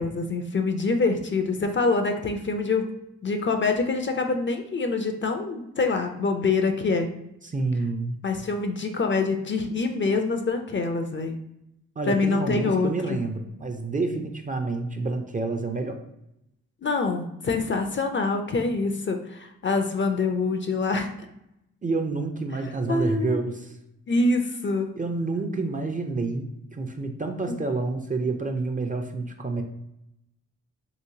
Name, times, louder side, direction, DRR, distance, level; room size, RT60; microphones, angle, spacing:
voice 1, 0.0-2.9 3.2-7.1 8.2-11.3 12.1-13.2 16.8-21.1 22.9-23.4 24.1-25.0 27.5-27.6, left 3 dB, 35° left, 6 dB, 0.4 m, -25 dB
voice 2, 7.4-8.2 12.0-16.0 21.8-23.8 25.0-29.6, right 3 dB, 25° right, 5 dB, 0.4 m, -28 dB
3.1 x 3.0 x 2.7 m, 0.83 s
supercardioid pair, 50°, 35 cm